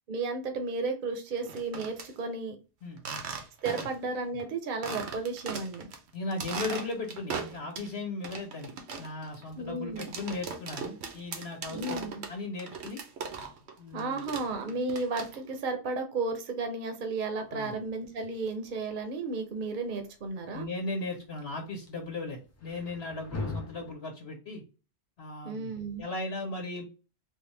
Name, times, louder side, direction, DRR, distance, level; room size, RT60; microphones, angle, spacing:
voice 1, 0.1-2.6 3.6-5.9 9.6-10.1 11.7-12.2 13.9-20.7 25.4-26.0, right 3 dB, 55° right, 6 dB, 0.8 m, -33 dB
sound 1, 1.4-2.1 3.0-4.1 4.4-4.5 4.8-6.0 6.3-7.9 8.2-13.7 14.0-15.6, right 5 dB, 90° right, 1.0 m, -39 dB
voice 2, 6.1-8.7 9.0-13.0 13.8-14.2 17.5-17.7 20.5-24.6 25.2-25.7 26.0-26.8, left 2 dB, 85° left, 2 dB, 1.3 m, -37 dB
sound 2, 17.2-23.9, left 3 dB, 20° left, 0.4 m, -43 dB
3.6 x 2.1 x 3.2 m, 0.32 s
omnidirectional pair, 1.1 m